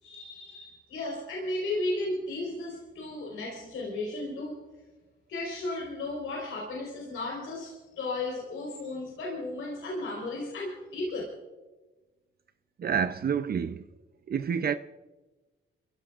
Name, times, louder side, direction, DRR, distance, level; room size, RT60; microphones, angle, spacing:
voice 1, 0.0-4.6 5.3-11.2, left 2 dB, 90° left, 4.7 m, -34 dB
voice 2, 12.8-13.8 14.3-14.7, right 7 dB, 50° right, 0.6 m, -28 dB
28.0 x 16.0 x 2.5 m
cardioid pair, 95°, 21 cm